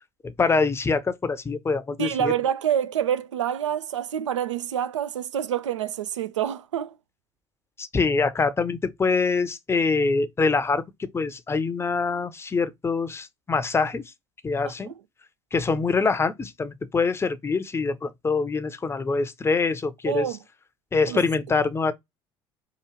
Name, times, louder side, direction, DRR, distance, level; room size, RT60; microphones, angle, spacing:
voice 1, 0.2-2.3 7.8-14.0 14.4-14.9 15.5-20.3 20.9-21.9, left 4 dB, 15° left, 0.6 m, -24 dB
voice 2, 2.0-6.9 14.9-15.0 20.1-20.4 21.1-21.2, right 9 dB, 80° right, 0.4 m, -27 dB
4.8 x 2.4 x 3.0 m
figure-of-eight pair, 60°, 15 cm